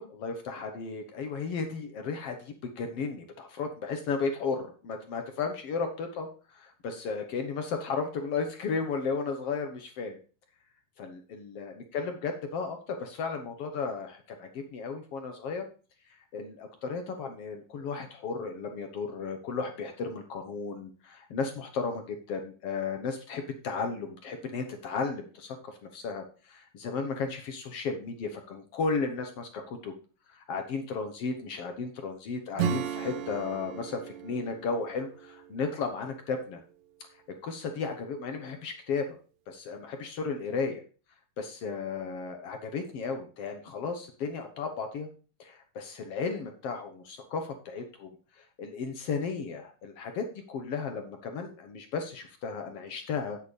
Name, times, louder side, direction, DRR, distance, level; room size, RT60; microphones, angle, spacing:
voice 1, 0.0-10.2 11.0-15.6 16.1-29.9 30.3-36.6 37.4-39.2 39.5-40.8 41.4-45.1 45.4-48.1 48.3-53.4, left 4 dB, 65° left, 6 dB, 1.6 m, -34 dB
Acoustic guitar / Strum, 32.6-36.9, right 7 dB, 75° right, 2.5 m, -36 dB
8.9 x 8.6 x 3.3 m, 0.37 s
omnidirectional pair, 3.9 m